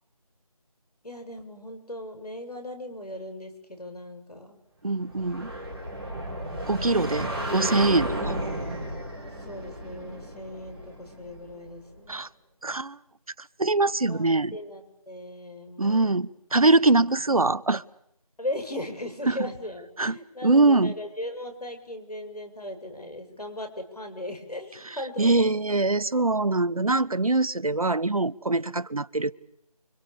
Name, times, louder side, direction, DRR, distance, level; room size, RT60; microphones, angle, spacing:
voice 1, 1.0-4.6 7.1-7.2 9.4-12.3 14.1-16.2 18.4-25.5, left 1 dB, 90° left, 7.2 m, -38 dB
voice 2, 4.8-5.5 6.7-8.4 12.1-12.3 12.6-13.0 13.6-14.5 15.8-17.8 19.3-19.4 20.0-20.9 25.2-29.3, right 3 dB, 65° right, 1.1 m, -23 dB
sound 1, 5.1-11.7, right 1 dB, ahead, 2.7 m, -33 dB
29.5 x 24.5 x 7.0 m
figure-of-eight pair, 170°, 19 cm